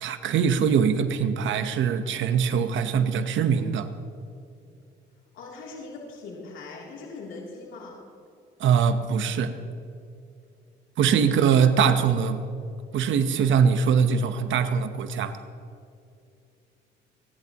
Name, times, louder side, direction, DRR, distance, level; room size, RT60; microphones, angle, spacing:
voice 1, 0.0-3.9 8.6-9.5 11.0-12.4 12.9-15.4, right 7 dB, 75° right, 10 dB, 1.0 m, -22 dB
voice 2, 5.3-8.0 11.3-11.8, left 3 dB, 80° left, -3 dB, 3.0 m, -41 dB
29.0 x 11.0 x 3.0 m, 2.6 s
cardioid pair, 90°, 20 cm